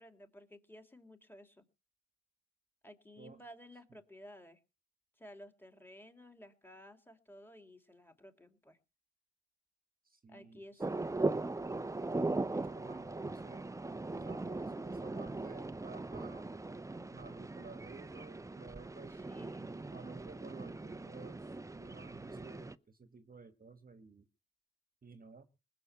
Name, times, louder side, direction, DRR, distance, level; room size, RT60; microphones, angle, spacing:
voice 1, 0.0-1.7 2.8-4.6 5.2-8.8 10.3-11.5 19.1-19.7, left 1 dB, 5° left, 7 dB, 2.7 m, -55 dB
voice 2, 10.1-10.6 12.4-13.7 14.1-16.5 17.1-19.2 19.9-21.5 21.7-24.2 25.0-25.4, right 4 dB, 30° right, 10 dB, 1.4 m, -53 dB
sound 1, 10.8-22.8, right 2 dB, 10° right, 0.7 m, -39 dB
20.0 x 7.0 x 8.0 m, 0.33 s
cardioid pair, 90°, 30 cm